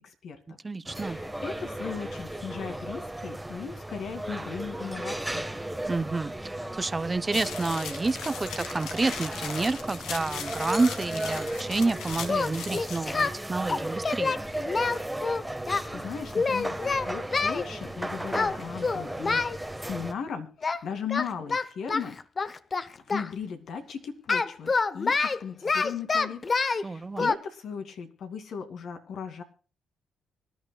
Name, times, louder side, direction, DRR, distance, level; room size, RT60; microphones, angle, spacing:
voice 1, 0.0-0.6 0.9-5.4 15.9-16.8 17.1-22.2 23.1-26.4 26.7-29.4, left 6 dB, 65° left, 2.3 m, -37 dB
voice 2, 0.6-1.2 5.9-6.3 6.7-14.4 26.8-27.3, right 3 dB, 20° right, 0.6 m, -29 dB
sound 1, 0.9-20.1, right 1 dB, 5° right, 1.3 m, -36 dB
sound 2, 7.3-13.0, left 7 dB, 80° left, 1.8 m, -39 dB
Singing, 12.3-13.4 13.7-15.8 16.3-17.6 18.3-18.6 18.8-19.6 20.6-20.8 21.1-23.3 24.3-26.8 27.2-27.3, left 4 dB, 35° left, 0.8 m, -27 dB
25.0 x 11.0 x 2.3 m
cardioid pair, 90°, 0 cm